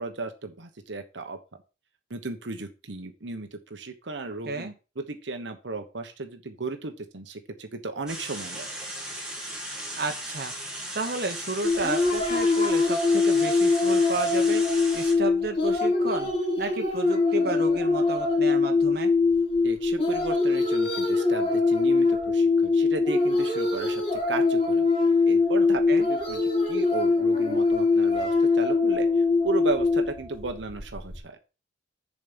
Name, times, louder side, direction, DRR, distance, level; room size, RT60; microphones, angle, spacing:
voice 1, 0.0-1.4 2.1-8.7 19.6-24.9 25.3-25.8 26.1-31.4, right 3 dB, 85° right, 6 dB, 1.2 m, -35 dB
sound 1, 8.1-15.1, right 1 dB, 5° right, 2.1 m, -36 dB
voice 2, 10.0-10.5 10.9-14.6 14.9-16.3 16.6-19.1 25.9-26.1, right 3 dB, 60° right, 4 dB, 1.2 m, -32 dB
sound 2, 11.6-31.2, left 3 dB, 35° left, 2.7 m, -23 dB
7.1 x 5.1 x 6.9 m, 0.32 s
head